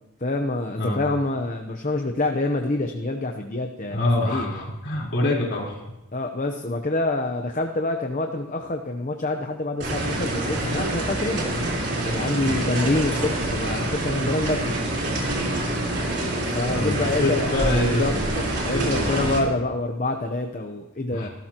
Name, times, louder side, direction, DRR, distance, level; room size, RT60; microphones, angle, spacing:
voice 1, 0.2-4.0 4.3-4.7 6.1-11.4 12.0-14.7 16.5-21.3, left 2 dB, 35° left, 4 dB, 0.8 m, -26 dB
voice 2, 3.9-5.8 12.4-12.6 15.3-15.5 16.7-18.3 18.7-19.3 21.1-21.3, left 1 dB, 50° left, -3 dB, 4.1 m, -26 dB
sound 1, 9.8-19.4, right 1 dB, 50° right, 3.9 m, -26 dB
27.5 x 13.5 x 3.0 m, 0.95 s
head